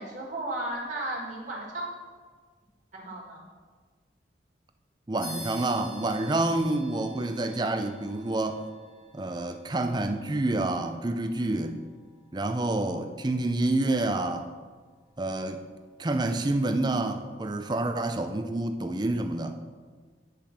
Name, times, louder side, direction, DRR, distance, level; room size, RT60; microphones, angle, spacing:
voice 1, 0.0-1.9 2.9-3.4, right 1 dB, 40° right, 1.8 m, -34 dB
voice 2, 5.1-8.6 9.1-11.8 12.3-14.5 15.2-15.6 16.0-19.6, right 2 dB, 25° right, 0.5 m, -28 dB
sound 1, 5.2-15.2, left 1 dB, 45° left, 2.5 m, -50 dB
9.2 x 5.2 x 5.9 m
head